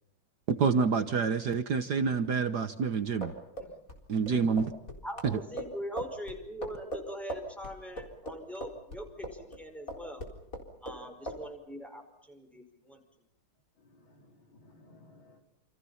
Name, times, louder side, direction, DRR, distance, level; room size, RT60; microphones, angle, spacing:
voice 1, 0.5-3.3 4.1-4.7 5.2-5.3, right 5 dB, 55° right, 9 dB, 1.6 m, -27 dB
sound 1, 3.0-9.6 9.9-11.0 11.3-11.4, right 1 dB, 40° left, 4.4 m, -40 dB
voice 2, 5.0-10.3 10.8-13.0, equal, ahead, 5 dB, 5.0 m, -42 dB
voice 3, 13.8-15.4, left 2 dB, 70° left, 4 dB, 4.2 m, -59 dB
28.5 x 28.0 x 5.7 m, 0.82 s
omnidirectional pair, 2.3 m